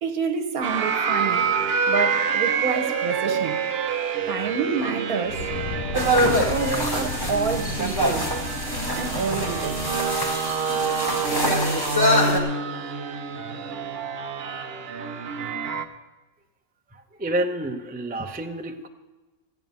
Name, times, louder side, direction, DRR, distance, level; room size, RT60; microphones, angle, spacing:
voice 1, 0.0-1.5 1.9-3.7 4.3-5.4 5.9-8.3 9.0-9.8, right 5 dB, 75° right, 1.6 m, -28 dB
sound 1, 0.6-15.8, right 5 dB, 55° right, 0.8 m, -27 dB
sound 2, 5.2-10.0, left 4 dB, 85° left, 1.3 m, -34 dB
sound 3, 5.9-12.4, equal, 15° left, 1.5 m, -25 dB
voice 2, 16.9-18.9, right 1 dB, 10° right, 0.4 m, -29 dB
14.0 x 9.2 x 5.3 m
omnidirectional pair, 1.6 m